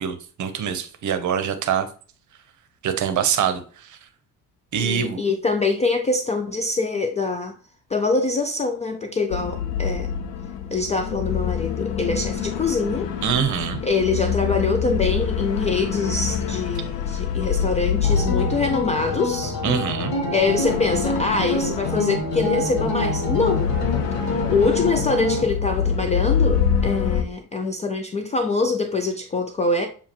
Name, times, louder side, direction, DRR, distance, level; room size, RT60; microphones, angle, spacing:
voice 1, 0.0-1.9 2.8-4.0 4.7-5.2 13.2-13.8 19.6-20.1, right 8 dB, 40° right, 0.8 m, -24 dB
voice 2, 4.8-7.5 7.9-10.1 10.7-13.1 13.8-19.6 20.3-23.7 24.5-29.9, left 3 dB, 15° left, 0.3 m, -24 dB
sound 1, 9.3-27.2, left 7 dB, 80° left, 0.6 m, -26 dB
sound 2, 18.0-25.4, left 1 dB, 50° left, 1.3 m, -27 dB
7.0 x 2.4 x 2.9 m
figure-of-eight pair, 55°, 47 cm